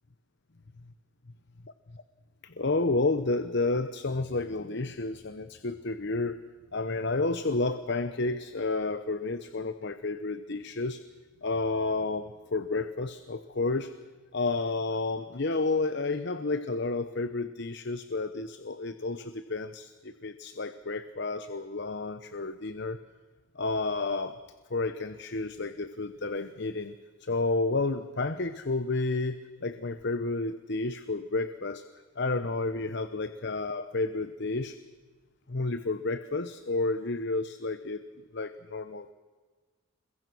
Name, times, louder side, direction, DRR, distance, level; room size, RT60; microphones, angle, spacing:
voice 1, 2.4-6.4 6.7-11.0 11.4-13.9 14.3-23.0 23.5-24.4 24.7-26.9 27.2-31.8 32.2-34.8 35.5-38.0 38.3-39.1, left 3 dB, 55° left, 11 dB, 0.9 m, -31 dB
28.0 x 22.5 x 6.2 m, 1.4 s
head